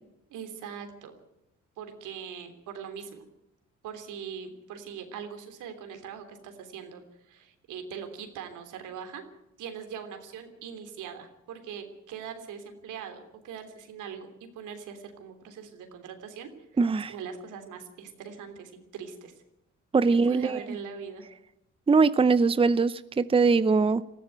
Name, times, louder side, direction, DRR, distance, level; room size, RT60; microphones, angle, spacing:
voice 1, 0.3-1.1 1.8-3.3 3.8-9.2 9.6-19.3 20.2-21.2, right 7 dB, 85° right, 7 dB, 3.3 m, -41 dB
voice 2, 16.8-17.1 19.9-20.6 21.9-24.0, right 4 dB, 20° right, 15 dB, 0.7 m, -22 dB
19.5 x 14.5 x 9.1 m, 0.85 s
cardioid pair, 90°, 30 cm